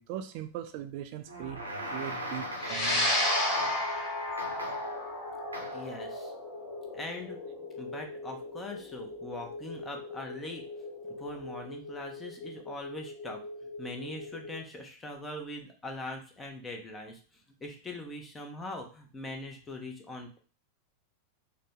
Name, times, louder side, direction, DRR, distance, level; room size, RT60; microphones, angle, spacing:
voice 1, 0.0-3.2, right 10 dB, 45° right, 7 dB, 0.3 m, -40 dB
sound 1, 1.3-3.3 3.5-4.0 4.4-5.0 5.5-5.9, equal, 75° right, 0.7 m, -39 dB
sound 2, 2.6-14.6, left 2 dB, 60° left, 0.6 m, -44 dB
sound 3, 2.6-11.1, left 1 dB, 35° left, 1.3 m, -33 dB
voice 2, 5.7-6.3 6.9-7.4 7.8-10.6 11.2-13.4 13.8-17.2 17.6-20.4, left 2 dB, 15° left, 3 dB, 0.8 m, -41 dB
3.8 x 2.2 x 3.6 m, 0.38 s
figure-of-eight pair, 90°, 0 cm